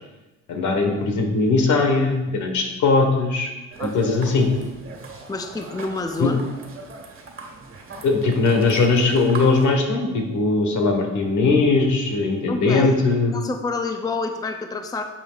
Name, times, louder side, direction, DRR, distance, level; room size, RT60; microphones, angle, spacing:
voice 1, 0.5-3.5 3.8-4.5 6.2-6.3 8.0-13.4, left 3 dB, 70° left, 3 dB, 1.4 m, -20 dB
sound 1, 3.7-9.7, right 3 dB, 45° right, 1.5 m, -38 dB
voice 2, 3.8-4.1 5.3-6.4 12.5-13.0 13.3-15.0, left 3 dB, 15° left, 5 dB, 0.6 m, -28 dB
8.9 x 7.3 x 2.4 m, 1.1 s
cardioid pair, 90°, 30 cm